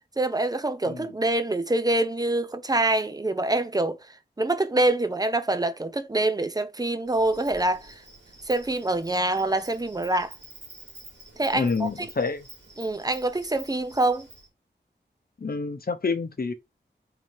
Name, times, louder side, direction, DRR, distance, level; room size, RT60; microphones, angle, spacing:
voice 1, 0.2-4.0 4.4-8.0 8.5-10.3 11.4-12.1 12.8-14.3, right 2 dB, 20° right, 0.7 m, -25 dB
Insect, 7.1-14.5, right 2 dB, 70° right, 2.2 m, -48 dB
voice 2, 11.5-12.4 15.4-16.5, left 4 dB, 55° left, 0.9 m, -28 dB
3.9 x 2.8 x 4.7 m
wide cardioid pair, 55°, 19 cm